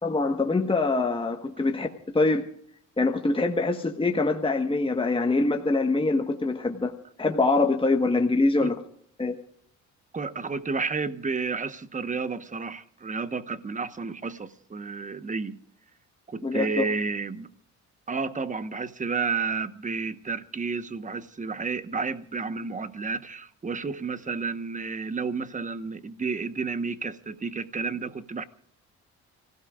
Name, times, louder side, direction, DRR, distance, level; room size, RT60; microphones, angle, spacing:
voice 1, 0.0-2.5 3.0-6.9 7.2-8.8 9.2-9.3 16.4-16.9, left 3 dB, 15° left, 1.3 m, -24 dB
voice 2, 10.1-15.6 16.3-17.5 18.1-28.4, right 4 dB, 25° right, 1.1 m, -31 dB
30.0 x 16.5 x 2.4 m
cardioid pair, 90°, 30 cm